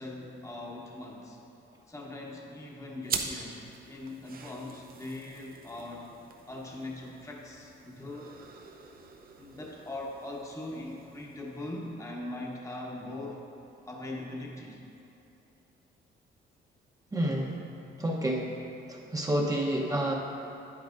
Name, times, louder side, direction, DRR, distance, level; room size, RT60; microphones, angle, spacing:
voice 1, 0.0-1.4 1.9-6.1 6.5-8.4 9.4-13.4 13.9-14.8, left 2 dB, 15° left, -2 dB, 1.0 m, -41 dB
sound 1, 3.0-12.0, right 5 dB, 50° right, 0.7 m, -43 dB
voice 2, 17.1-17.6 18.0-18.5 18.9-20.1, right 1 dB, 15° right, -1 dB, 0.9 m, -29 dB
9.5 x 8.8 x 2.6 m, 2.8 s
cardioid pair, 90°, 20 cm